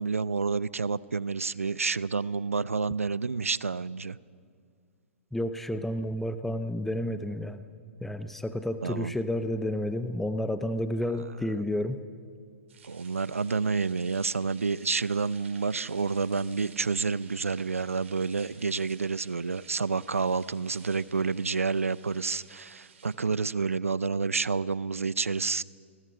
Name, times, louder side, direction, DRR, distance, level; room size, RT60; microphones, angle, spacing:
voice 1, 0.0-4.2 8.8-9.1 12.8-25.6, right 4 dB, 85° right, 20 dB, 0.6 m, -29 dB
voice 2, 5.3-7.6 8.0-12.0, left 1 dB, 5° left, 10 dB, 0.9 m, -31 dB
sound 1, 12.7-23.2, right 6 dB, 65° right, 5.1 m, -55 dB
28.5 x 20.0 x 5.8 m, 2.2 s
figure-of-eight pair, 110°, 7 cm